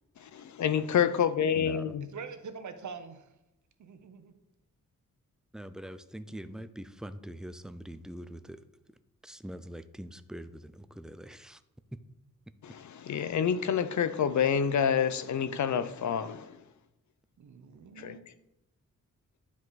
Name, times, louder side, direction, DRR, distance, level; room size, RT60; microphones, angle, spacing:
voice 1, 0.2-2.1 12.6-16.5 18.0-18.2, left 8 dB, 60° left, 0.6 m, -28 dB
voice 2, 1.5-2.0 5.5-8.6 9.2-11.6 11.9-12.0, right 1 dB, ahead, 0.4 m, -43 dB
voice 3, 2.1-3.3 3.8-4.3 17.4-18.2, right 5 dB, 65° right, 1.0 m, -44 dB
10.0 x 4.8 x 4.1 m
cardioid pair, 95°, 32 cm